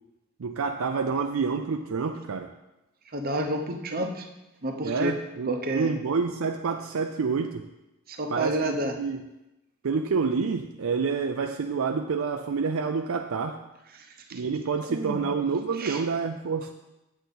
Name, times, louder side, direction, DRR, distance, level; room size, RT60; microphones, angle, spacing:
voice 1, 0.4-2.5 4.8-7.7 8.3-9.2 9.8-13.6 14.3-16.7, right 5 dB, 65° right, 5 dB, 0.4 m, -28 dB
voice 2, 3.1-4.2 4.6-5.1 5.5-5.9 8.1-8.9 14.0-14.1 14.3-14.4 14.9-15.3 15.8-16.0, right 1 dB, 40° right, 4 dB, 0.9 m, -29 dB
8.2 x 7.9 x 4.1 m, 0.96 s
head